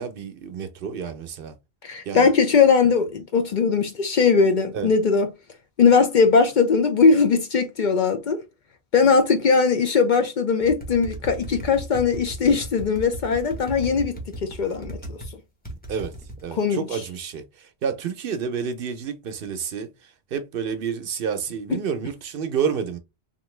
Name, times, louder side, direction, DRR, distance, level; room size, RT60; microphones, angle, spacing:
voice 1, 0.0-1.5 2.1-2.3 4.7-4.9 15.9-16.1 16.4-23.0, right 7 dB, 65° right, 0.8 m, -29 dB
voice 2, 1.8-5.3 5.8-8.4 8.9-15.2 16.5-17.0 21.7-21.8, left 5 dB, 55° left, 0.6 m, -20 dB
sound 1, 10.6-15.3 15.6-16.4, right 1 dB, 10° left, 0.8 m, -36 dB
2.9 x 2.5 x 3.1 m
omnidirectional pair, 1.1 m